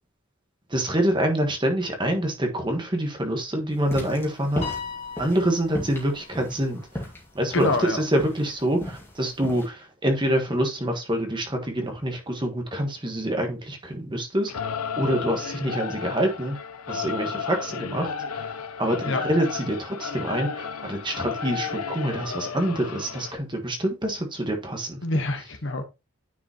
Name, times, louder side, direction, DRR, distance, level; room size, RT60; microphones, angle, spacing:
voice 1, 0.7-4.6 5.2-6.8 7.3-14.5 15.0-16.6 16.9-18.5 18.8-25.0, right 1 dB, 20° right, 1.4 m, -26 dB
sound 1, 3.8-9.7, left 1 dB, 10° left, 2.1 m, -35 dB
Piano, 4.6-7.1, left 5 dB, 30° left, 1.9 m, -38 dB
voice 2, 7.5-8.0 19.0-19.2 25.0-25.8, left 2 dB, 55° left, 1.3 m, -26 dB
Singing / Musical instrument, 14.5-23.4, left 6 dB, 85° left, 0.7 m, -33 dB
9.6 x 5.1 x 3.0 m
head